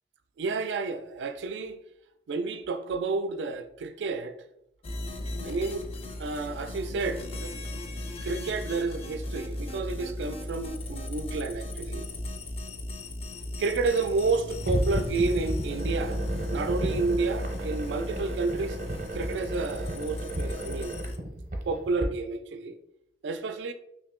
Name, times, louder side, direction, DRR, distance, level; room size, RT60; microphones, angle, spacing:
voice 1, 0.4-1.8 2.3-4.3 5.4-5.9 6.2-7.5 8.2-12.0 13.6-16.2 16.5-18.8 19.1-21.0 21.7-22.8 23.2-23.7, right 3 dB, 90° right, 0.4 m, -30 dB
sound 1, 4.8-21.2, left 1 dB, 35° left, 0.3 m, -36 dB
sound 2, 14.6-22.1, right 1 dB, 45° right, 0.6 m, -34 dB
2.8 x 2.7 x 3.6 m
head